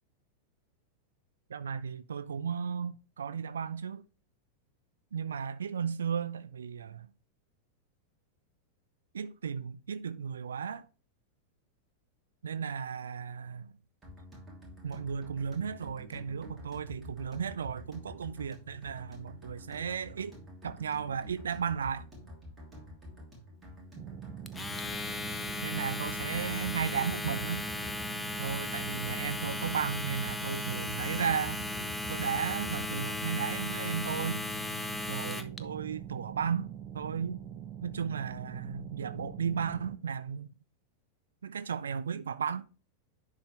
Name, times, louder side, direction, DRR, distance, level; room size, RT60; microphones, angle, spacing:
voice 1, 1.5-4.0 5.1-7.1 9.1-10.9 12.4-13.7 14.8-20.3 20.6-22.0 25.6-27.6 28.4-31.6 32.1-34.4 35.1-37.4 37.8-40.5 41.4-42.7, right 7 dB, 70° right, 0.4 m, -35 dB
sound 1, 14.0-33.2, left 1 dB, 15° right, 2.7 m, -49 dB
sound 2, 24.0-40.0, right 9 dB, 30° right, 0.9 m, -44 dB
Domestic sounds home sounds, 24.5-35.6, left 3 dB, 10° left, 0.5 m, -37 dB
10.5 x 3.8 x 3.1 m
figure-of-eight pair, 90°, 0 cm